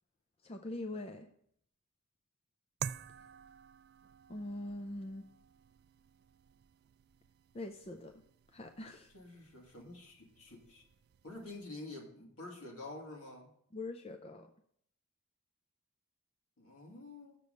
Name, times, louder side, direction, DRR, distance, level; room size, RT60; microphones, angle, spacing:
voice 1, 0.4-1.3 4.3-5.3 7.5-8.2 8.5-9.1 13.7-14.5, left 2 dB, 25° left, 6 dB, 0.5 m, -43 dB
sound 1, 2.8-11.6, right 8 dB, 45° right, 0.3 m, -50 dB
voice 2, 9.1-10.8 11.2-13.5 16.6-17.4, left 2 dB, 65° left, 0 dB, 2.4 m, -48 dB
7.0 x 6.7 x 6.4 m, 0.68 s
head